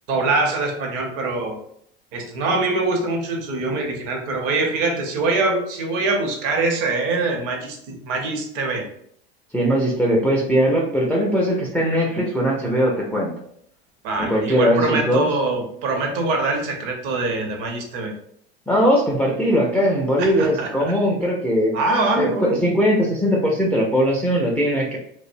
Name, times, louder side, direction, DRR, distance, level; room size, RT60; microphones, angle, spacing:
voice 1, 0.1-1.6 2.1-8.8 14.0-18.1 20.2-20.9 21.7-22.6, right 3 dB, 55° right, 2 dB, 0.7 m, -23 dB
voice 2, 9.5-13.3 14.2-15.3 18.7-25.0, equal, 5° left, -3 dB, 0.3 m, -20 dB
2.5 x 2.0 x 2.4 m, 0.68 s
hypercardioid pair, 90°, 29 cm